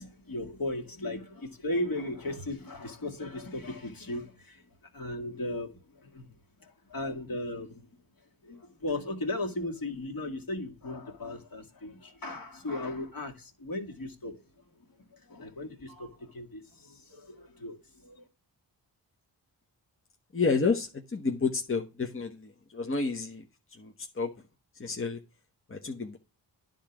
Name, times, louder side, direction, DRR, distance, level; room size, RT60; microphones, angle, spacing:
voice 1, 0.0-4.6 4.9-6.3 6.6-7.9 8.4-14.4 15.0-18.3, left 1 dB, 50° left, 2.1 m, -37 dB
voice 2, 20.3-24.3 24.7-25.2 25.7-26.2, left 4 dB, 30° left, 1.0 m, -30 dB
10.0 x 3.8 x 5.9 m
cardioid pair, 45°, 44 cm